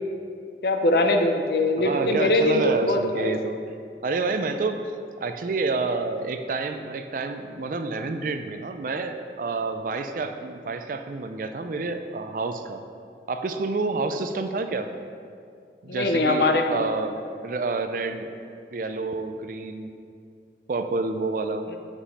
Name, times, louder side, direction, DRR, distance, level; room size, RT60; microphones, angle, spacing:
voice 1, 0.6-3.4 15.9-16.9, left 1 dB, 60° left, 5 dB, 0.5 m, -22 dB
voice 2, 1.8-3.6 4.0-4.8 5.2-12.8 13.3-14.9 15.8-17.2 17.4-18.3 18.7-19.9 20.7-21.6, right 3 dB, 50° right, 7 dB, 0.4 m, -28 dB
5.1 x 5.0 x 5.5 m, 2.4 s
head